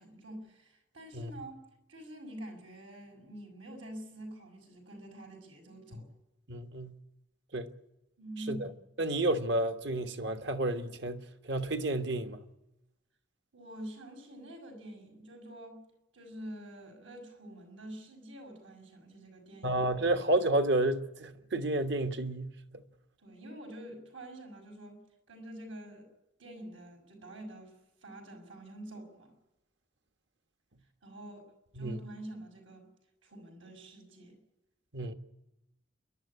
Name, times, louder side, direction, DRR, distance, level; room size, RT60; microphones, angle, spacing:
voice 1, 0.0-6.1 8.2-8.7 13.5-15.8 16.1-19.8 23.2-25.0 25.3-26.1 26.4-29.3 31.0-32.9 33.2-34.4, right 1 dB, 85° right, 6.4 m, -46 dB
voice 2, 6.5-6.9 7.5-7.7 8.5-8.6 9.0-12.4 19.6-22.8 31.8-32.0 34.9-35.1, right 1 dB, 60° right, 1.4 m, -31 dB
28.0 x 12.0 x 9.9 m
head